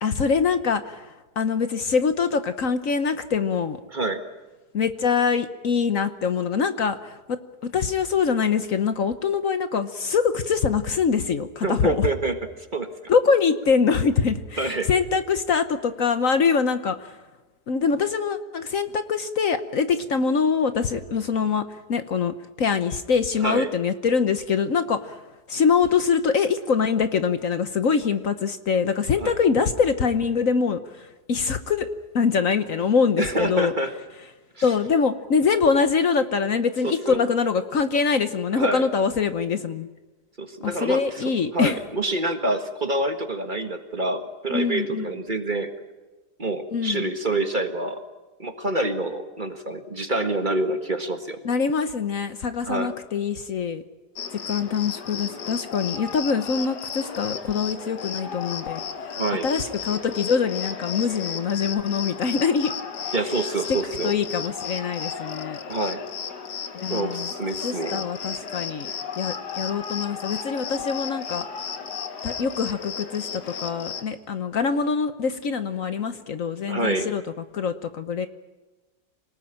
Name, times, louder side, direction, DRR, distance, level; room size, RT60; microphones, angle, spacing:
voice 1, 0.0-3.8 4.7-12.1 13.1-17.2 17.7-25.2 25.5-31.9 32.1-33.7 34.6-39.9 40.6-41.8 44.5-45.1 46.7-47.1 51.4-53.8 54.3-58.8 59.4-62.7 63.0-63.1 63.7-63.8 64.0-65.6 66.7-67.3 67.6-68.9 69.2-71.5 72.2-77.2 77.5-78.3, left 5 dB, 55° left, 10 dB, 1.3 m, -24 dB
voice 2, 3.9-4.2 11.6-12.9 14.6-14.9 23.4-23.7 29.2-29.3 33.2-33.9 34.6-34.7 36.8-37.2 38.5-38.8 40.4-41.2 41.5-45.7 46.4-48.0 48.4-51.4 52.6-52.9 59.2-59.5 63.1-64.1 65.7-66.0 66.9-68.0 76.7-77.1, right 2 dB, 30° right, 7 dB, 1.7 m, -27 dB
Cricket, 54.2-74.0, left 6 dB, 80° left, 2.0 m, -34 dB
26.0 x 19.0 x 8.8 m, 1.2 s
omnidirectional pair, 1.8 m